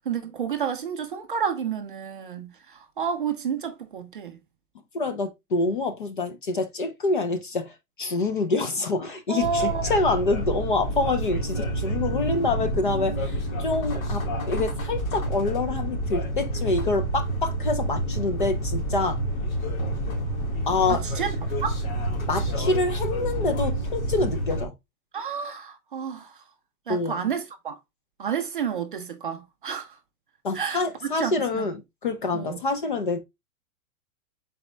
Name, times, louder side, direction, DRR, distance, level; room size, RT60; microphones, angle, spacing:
voice 1, 0.1-4.4 9.3-9.9 20.9-21.8 25.1-26.4 26.9-27.8 28.2-30.0 30.5-31.7 32.3-32.6, right 7 dB, 40° right, 0.4 m, -30 dB
voice 2, 4.9-19.2 20.7-21.0 22.3-24.7 26.9-27.2 30.4-33.2, left 3 dB, 35° left, 0.4 m, -26 dB
sound 1, 9.4-24.7, right 1 dB, 65° left, 2.0 m, -28 dB
4.1 x 4.0 x 3.2 m
hypercardioid pair, 165°, 45 cm